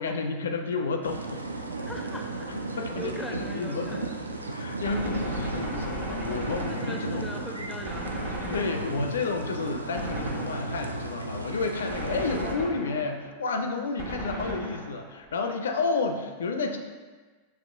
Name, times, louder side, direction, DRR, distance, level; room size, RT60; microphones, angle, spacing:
voice 1, 0.0-1.4 2.5-4.0 4.5-7.3 8.5-16.8, left 4 dB, 65° left, 5 dB, 0.4 m, -31 dB
sound 1, 1.0-12.6, right 2 dB, 80° right, 0.3 m, -35 dB
voice 2, 1.9-4.2 6.7-9.0, left 1 dB, ahead, 2 dB, 0.5 m, -40 dB
Gunshot gunfire, 4.8-7.3 7.9-9.3 10.0-11.0 11.9-13.3 14.0-15.2, right 1 dB, 45° right, 1.2 m, -36 dB
6.9 x 3.0 x 2.4 m, 1.4 s
figure-of-eight pair, 90°, 0 cm